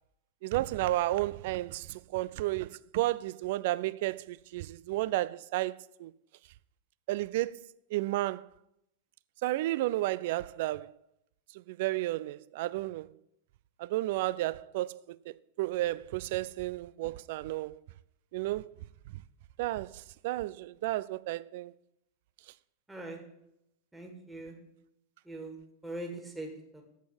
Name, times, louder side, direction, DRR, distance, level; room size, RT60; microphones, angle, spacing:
voice 1, 0.4-5.7 6.0-6.1 7.1-7.6 7.9-8.5 9.4-10.9 11.7-13.1 13.8-17.8 18.3-18.7 19.6-21.7, right 17 dB, 50° right, 0.3 m, -32 dB
voice 2, 22.9-23.2 23.9-24.5 25.2-25.5 25.8-26.8, right 1 dB, 5° right, 2.0 m, -41 dB
8.3 x 7.9 x 6.0 m
figure-of-eight pair, 90°, 0 cm